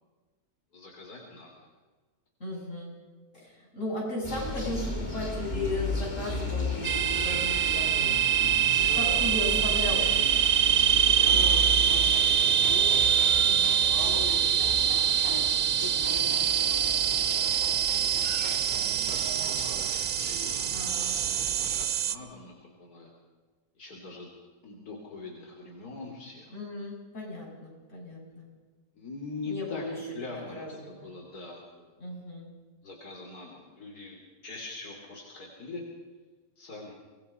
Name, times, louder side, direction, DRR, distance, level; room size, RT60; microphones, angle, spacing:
voice 1, 0.7-1.7 8.0-9.5 10.9-13.1 13.5-14.4 14.7-15.5 15.8-17.4 18.8-20.8 21.6-23.1 23.8-24.3 24.6-26.5 29.0-29.8 30.1-31.9 32.8-35.8 36.6-36.9, left 3 dB, 85° left, 0 dB, 3.6 m, -43 dB
voice 2, 2.4-2.9 3.3-8.2 8.9-10.3 13.4-13.9 20.7-21.1 26.5-28.5 29.4-29.9 30.5-30.7 31.0-31.1 32.0-32.5, left 2 dB, 50° left, -3 dB, 8.0 m, -36 dB
sound 1, 4.2-21.9, left 1 dB, 30° left, 3.8 m, -36 dB
sound 2, 6.8-22.1, right 9 dB, 75° right, 1.3 m, -25 dB
25.5 x 19.5 x 5.7 m, 1.3 s
omnidirectional pair, 1.6 m